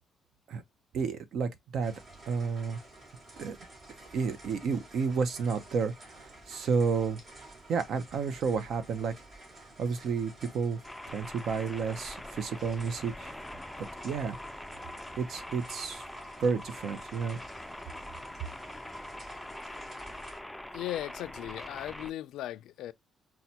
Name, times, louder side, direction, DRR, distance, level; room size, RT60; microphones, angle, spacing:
voice 1, 0.9-1.9 2.3-2.8 3.4-3.6 4.1-7.2 7.7-9.1 9.8-10.8 11.1-13.4 14.0-14.4 15.2-16.0 16.4-17.4, right 5 dB, 70° right, 0.6 m, -31 dB
sound 1, 1.8-20.4, right 2 dB, 40° right, 3.2 m, -52 dB
sound 2, 10.8-22.1, left 1 dB, 5° left, 0.3 m, -43 dB
voice 2, 20.7-22.9, left 13 dB, 85° left, 0.3 m, -37 dB
5.5 x 2.2 x 2.8 m
cardioid pair, 90°, 0 cm